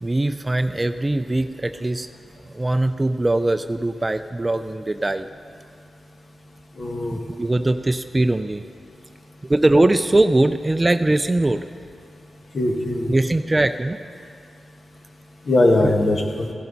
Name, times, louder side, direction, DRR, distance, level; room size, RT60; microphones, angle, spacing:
voice 1, 0.0-2.1 2.5-5.3 7.1-8.6 9.5-11.7 13.1-14.0, right 2 dB, 25° right, 10 dB, 0.4 m, -21 dB
voice 2, 6.8-7.2 12.5-13.1 15.4-16.5, left 2 dB, 55° left, 1 dB, 1.7 m, -20 dB
16.0 x 12.0 x 4.1 m, 2.3 s
cardioid pair, 70°, 0 cm